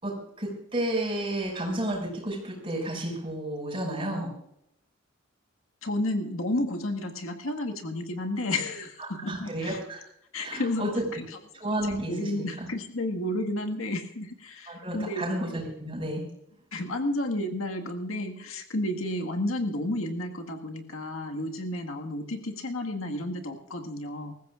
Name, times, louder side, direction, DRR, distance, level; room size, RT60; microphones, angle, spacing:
voice 1, 0.0-4.3 9.2-10.0 10.4-10.9 11.6-12.7 14.7-16.2, right 1 dB, 25° right, -1 dB, 6.1 m, -31 dB
voice 2, 5.8-9.8 10.3-11.8 12.1-15.2 16.7-24.3, left 1 dB, 85° left, 3 dB, 1.8 m, -32 dB
24.5 x 15.0 x 2.5 m, 0.76 s
head